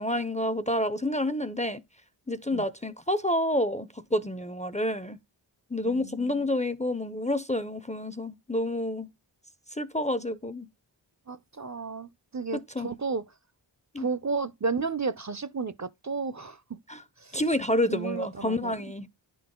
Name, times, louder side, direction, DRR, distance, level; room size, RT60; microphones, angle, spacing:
voice 1, 0.0-1.8 2.3-5.2 5.7-9.1 9.8-10.7 12.5-12.9 13.9-14.1 16.9-17.0 17.3-19.1, left 1 dB, 15° left, 0.5 m, -29 dB
voice 2, 5.8-6.5 11.3-13.2 14.0-16.8 17.2-17.4 17.9-18.7, right 4 dB, 40° right, 0.5 m, -33 dB
10.0 x 3.9 x 3.6 m
wide cardioid pair, 45°, 46 cm